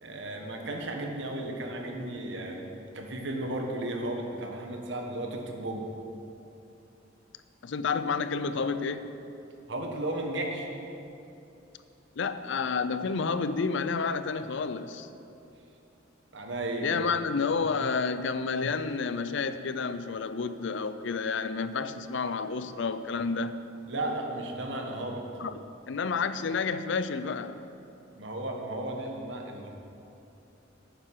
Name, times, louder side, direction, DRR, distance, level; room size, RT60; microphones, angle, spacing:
voice 1, 0.0-5.9 9.7-10.7 16.3-17.1 23.9-25.2 28.2-29.7, right 1 dB, 65° right, 2 dB, 1.4 m, -34 dB
voice 2, 7.6-9.1 12.2-15.1 16.8-23.6 25.4-27.6, left 5 dB, 65° left, 12 dB, 0.5 m, -30 dB
11.5 x 8.9 x 4.8 m, 2.8 s
head